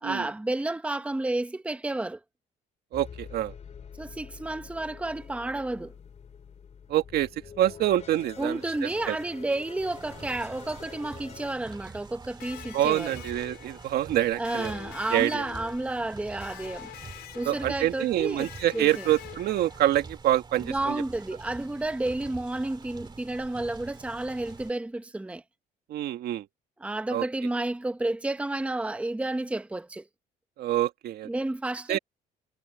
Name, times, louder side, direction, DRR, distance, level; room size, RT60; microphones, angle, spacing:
voice 1, 0.0-2.2 4.0-5.9 8.4-13.1 14.3-16.9 17.3-19.1 20.6-25.4 26.8-30.1 31.2-32.0, right 2 dB, 5° right, 0.9 m, -31 dB
sound 1, 2.9-11.6, left 7 dB, 40° left, 2.8 m, -46 dB
voice 2, 2.9-3.5 6.9-7.3 7.6-9.2 12.7-14.7 15.1-15.4 17.4-21.0 25.9-26.5 27.1-27.2 30.6-31.3 31.9-32.0, right 13 dB, 70° right, 1.8 m, -26 dB
sound 2, 9.8-24.7, right 4 dB, 25° right, 2.4 m, -46 dB
Electric guitar, 12.4-20.1, left 14 dB, 80° left, 4.5 m, -46 dB
cardioid pair, 110°, 17 cm